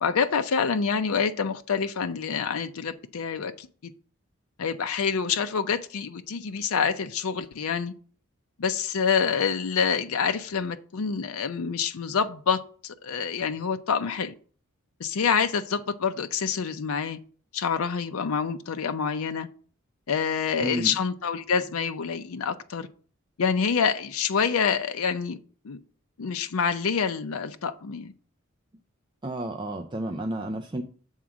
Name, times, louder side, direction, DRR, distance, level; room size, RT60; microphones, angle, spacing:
voice 1, 0.0-3.9 4.6-7.9 8.6-14.3 15.0-17.2 17.5-19.5 20.1-22.9 23.4-25.4 25.6-25.8 26.2-28.1, left 6 dB, 80° left, 0.5 m, -27 dB
voice 2, 20.6-21.0 29.2-30.8, right 1 dB, 20° right, 0.5 m, -31 dB
7.2 x 3.7 x 6.1 m
head